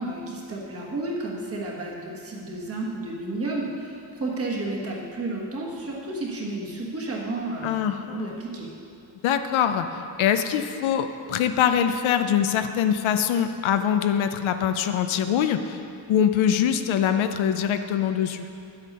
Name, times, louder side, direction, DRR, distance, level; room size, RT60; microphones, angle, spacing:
voice 1, 0.0-8.7, right 2 dB, 30° right, -3 dB, 1.5 m, -32 dB
voice 2, 7.6-8.3 9.2-9.9 10.2-15.8 16.1-18.5, left 9 dB, 80° left, 8 dB, 0.7 m, -23 dB
10.0 x 8.1 x 5.3 m, 2.5 s
wide cardioid pair, 180°, 47 cm